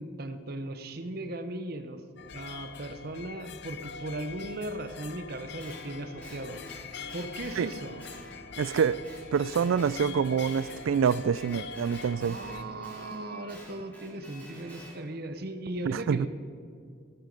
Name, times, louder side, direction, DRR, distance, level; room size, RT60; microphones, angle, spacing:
voice 1, 0.0-2.0 2.3-6.6 7.1-8.0 12.2-16.3, right 1 dB, 50° right, 9 dB, 0.8 m, -37 dB
sound 1, 2.2-12.6, left 5 dB, 55° left, 0.5 m, -44 dB
Guitar, 5.6-10.1 10.4-15.0, equal, 5° left, 3.7 m, -49 dB
voice 2, 8.6-9.0 9.3-12.4 15.9-16.3, right 6 dB, 85° right, 18 dB, 0.3 m, -26 dB
15.0 x 9.1 x 5.3 m, 2.3 s
head